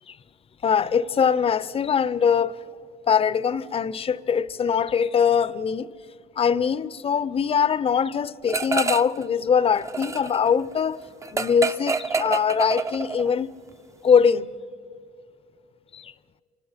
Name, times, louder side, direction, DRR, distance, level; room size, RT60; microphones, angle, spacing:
voice 1, 0.6-2.6 3.1-5.9 6.4-11.0 11.3-13.5 14.0-14.5 15.9-16.1, left 7 dB, 35° left, 0.6 m, -22 dB
sound 1, 8.5-9.2 9.5-13.4, right 4 dB, 20° right, 0.5 m, -28 dB
28.0 x 25.5 x 5.8 m
cardioid pair, 110°, 17 cm